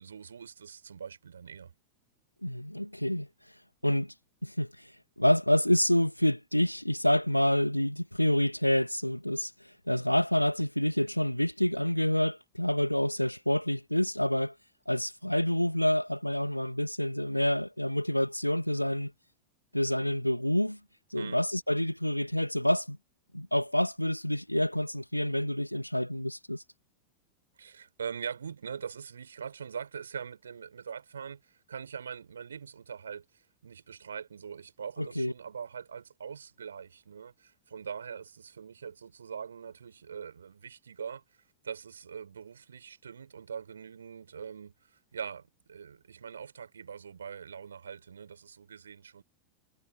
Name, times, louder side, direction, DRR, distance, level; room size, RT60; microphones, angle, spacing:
voice 1, 0.0-1.7 21.1-21.4 27.6-31.4 31.7-33.2 33.6-41.2 41.6-49.2, right 7 dB, 70° right, 6.3 m, -42 dB
voice 2, 2.4-3.3 3.8-4.1 4.4-4.9 5.2-9.5 9.9-14.5 14.9-19.1 19.7-20.8 21.1-23.0 23.3-26.6 35.0-35.3, left 1 dB, 90° left, 1.9 m, -28 dB
figure-of-eight pair, 90°, 0 cm